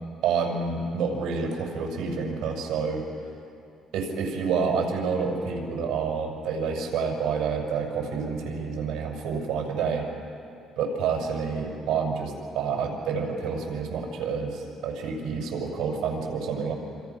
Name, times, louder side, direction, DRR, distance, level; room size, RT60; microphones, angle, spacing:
voice 1, 0.2-3.0 3.9-10.1 10.8-16.7, right 5 dB, 85° right, 0 dB, 6.3 m, -28 dB
27.0 x 26.5 x 6.1 m, 2.5 s
cardioid pair, 140°, 0 cm